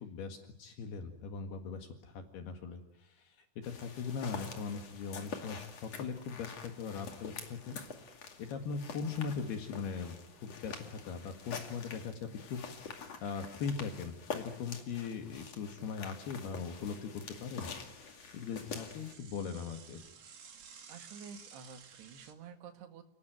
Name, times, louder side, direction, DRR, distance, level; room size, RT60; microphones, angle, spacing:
voice 1, 0.0-7.8 8.4-10.2 10.4-12.6 12.9-17.7 18.3-20.0, left 5 dB, 70° left, 5 dB, 3.8 m, -40 dB
sound 1, 3.6-19.1, left 5 dB, 45° left, 3.1 m, -46 dB
Bicycle / Mechanisms, 13.0-13.4 13.8-13.9 14.1-14.2 14.9-16.0 16.4-22.3, right 6 dB, 45° right, 2.6 m, -56 dB
voice 2, 20.9-23.0, right 6 dB, 75° right, 6 dB, 4.0 m, -50 dB
30.0 x 19.5 x 9.3 m, 0.78 s
omnidirectional pair, 4.8 m